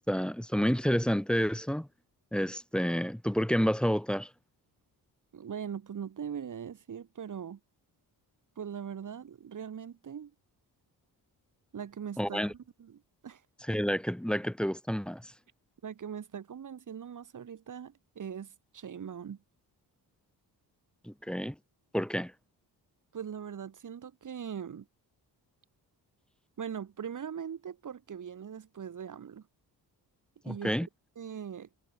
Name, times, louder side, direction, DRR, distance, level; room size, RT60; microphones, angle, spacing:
voice 1, 0.0-1.9 2.3-4.3 12.2-12.5 13.6-15.3 21.0-21.5 21.9-22.3 30.4-30.9, equal, ahead, 1.1 m, -29 dB
voice 2, 5.3-7.6 8.6-10.3 11.7-12.4 12.8-13.4 15.8-19.4 23.1-24.9 26.6-29.4 30.4-30.9 31.2-31.7, right 8 dB, 50° right, 2.7 m, -41 dB
wide cardioid pair, 150°, 40 cm